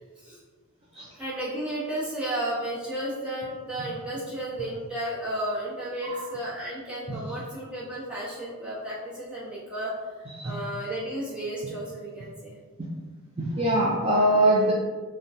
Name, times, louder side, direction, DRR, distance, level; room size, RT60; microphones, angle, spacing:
voice 1, 1.2-9.9 10.4-12.6, right 1 dB, 5° right, -10 dB, 0.9 m, -33 dB
voice 2, 13.4-14.7, right 1 dB, 25° right, -6 dB, 0.4 m, -22 dB
3.7 x 2.2 x 2.6 m, 1.4 s
head